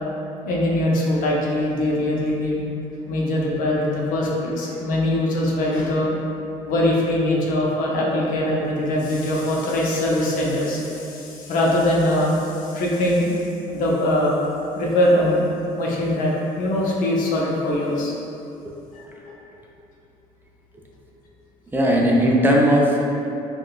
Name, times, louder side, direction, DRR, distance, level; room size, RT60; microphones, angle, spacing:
voice 1, 0.4-2.6 3.1-6.1 6.6-13.3 13.7-14.4 14.8-15.4 15.8-16.3 16.6-18.1 18.9-19.0, left 1 dB, 65° left, -3 dB, 0.6 m, -22 dB
voice 2, 21.7-23.0, equal, 15° right, -3 dB, 0.4 m, -18 dB
3.6 x 2.3 x 2.3 m, 2.7 s
supercardioid pair, 80°, 15 cm